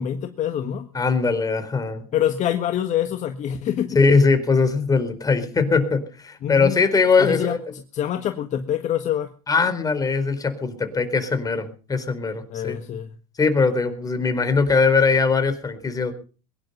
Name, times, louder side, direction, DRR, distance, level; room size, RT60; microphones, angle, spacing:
voice 1, 0.0-0.9 2.1-4.0 6.4-6.8 7.2-9.3 12.5-13.1, left 10 dB, 40° left, 1.7 m, -26 dB
voice 2, 0.9-2.0 3.9-7.6 9.5-12.8 13.4-16.1, left 4 dB, 20° left, 4.4 m, -20 dB
23.0 x 11.0 x 5.6 m
hypercardioid pair, 100°, 19 cm